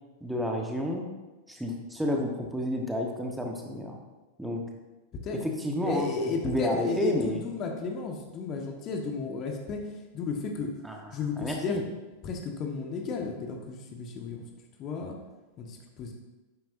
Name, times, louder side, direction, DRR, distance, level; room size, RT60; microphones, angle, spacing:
voice 1, 0.2-1.1 1.5-4.0 4.4-4.6 5.3-7.4 10.8-11.0 11.4-11.8, equal, 5° right, 1 dB, 1.3 m, -30 dB
voice 2, 5.8-10.7 11.1-11.8 12.2-14.4 14.8-15.2 15.6-16.1, left 5 dB, 35° left, 3 dB, 1.4 m, -33 dB
12.0 x 9.4 x 2.7 m, 1.1 s
figure-of-eight pair, 90°, 0 cm